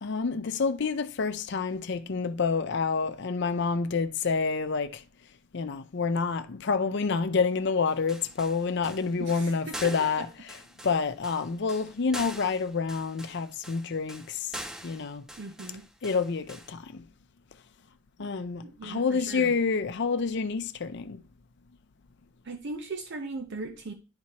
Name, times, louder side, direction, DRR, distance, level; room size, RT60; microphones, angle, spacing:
voice 1, 0.0-5.0 5.5-14.2 14.8-15.2 16.0-17.0 18.2-21.2, left 5 dB, 55° left, 0.5 m, -28 dB
sound 1, 7.9-16.7, equal, 5° right, 0.4 m, -44 dB
voice 2, 9.2-10.3 15.4-15.9 18.6-19.5 22.4-23.9, right 3 dB, 55° right, 0.6 m, -38 dB
10.5 x 4.5 x 2.8 m
head